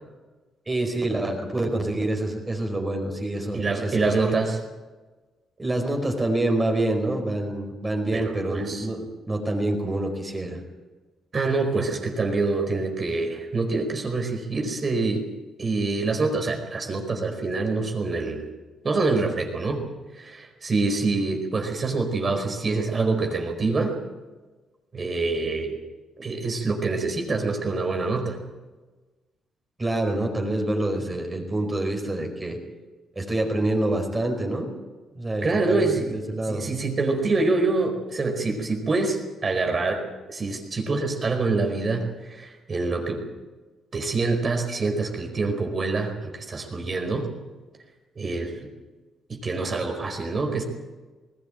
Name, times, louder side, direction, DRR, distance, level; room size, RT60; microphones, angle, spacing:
voice 1, 0.7-4.1 5.6-10.6 29.8-32.6 33.1-34.7 35.1-36.7, right 1 dB, 20° right, 2 dB, 4.8 m, -26 dB
voice 2, 3.5-4.6 8.1-8.9 11.3-15.2 15.6-18.4 18.8-19.8 20.1-23.9 24.9-25.8 26.2-28.4 35.4-36.2 36.5-40.0 40.3-43.2 43.9-47.3 48.1-48.7 49.3-50.6, right 3 dB, 35° right, 3 dB, 4.8 m, -26 dB
20.0 x 17.0 x 9.0 m, 1.3 s
cardioid pair, 90°, 0 cm